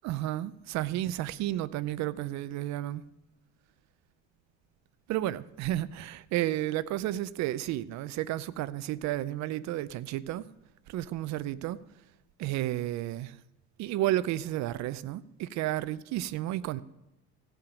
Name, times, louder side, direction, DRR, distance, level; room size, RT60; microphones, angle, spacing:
voice 1, 0.0-3.0 5.1-10.5 10.9-11.8 12.4-13.4 13.8-16.8, right 14 dB, 65° right, 0.6 m, -32 dB
17.0 x 5.7 x 5.2 m
cardioid pair, 125°, 31 cm